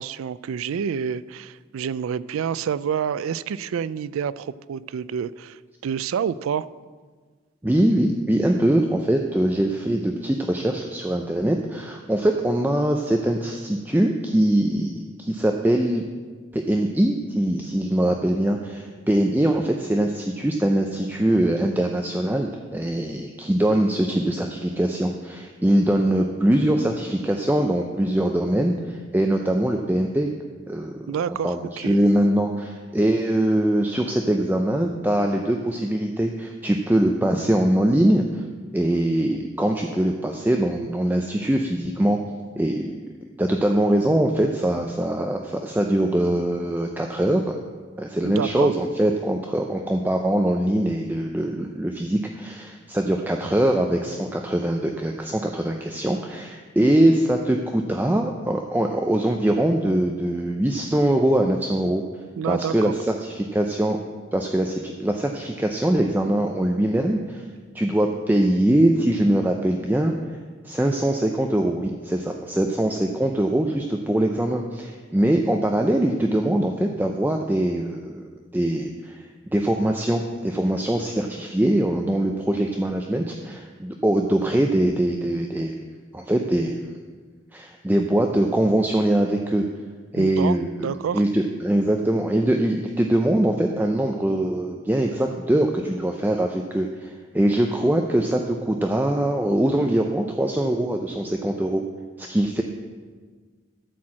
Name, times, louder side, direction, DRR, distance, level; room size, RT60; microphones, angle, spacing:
voice 1, 0.0-6.6 31.1-32.0 48.2-48.7 62.4-62.9 90.2-91.2, right 7 dB, 90° right, 18 dB, 0.3 m, -28 dB
voice 2, 7.6-14.9 15.2-16.0 16.5-30.3 30.7-31.0 31.3-38.4 38.7-42.2 42.6-43.0 43.4-47.6 48.0-62.0 62.4-64.0 64.3-67.5 67.7-70.1 70.6-85.7 86.1-86.8 87.5-89.6 90.1-90.7 91.1-101.8 102.2-102.6, right 1 dB, 10° right, 3 dB, 0.4 m, -22 dB
13.5 x 4.5 x 7.4 m, 1.5 s
head